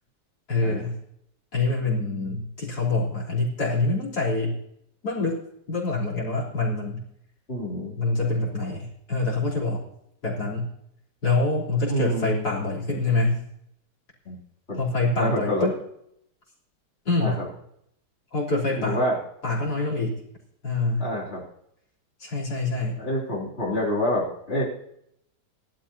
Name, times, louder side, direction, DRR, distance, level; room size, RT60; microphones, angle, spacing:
voice 1, 0.5-0.9 1.5-4.6 5.0-5.4 5.7-7.0 8.0-9.8 10.2-10.7 11.2-13.4 14.8-15.7 17.0-17.4 18.3-19.0 19.4-20.1 20.6-21.1 22.2-23.0, left 2 dB, 65° left, -3 dB, 4.2 m, -25 dB
voice 2, 7.5-8.0 11.9-12.4 14.2-14.3 14.7-14.8 15.2-15.7 17.2-17.5 18.8-19.2 21.0-21.4 23.0-24.6, left 1 dB, 35° left, -7 dB, 3.2 m, -27 dB
19.5 x 12.5 x 2.8 m, 0.74 s
omnidirectional pair, 1.8 m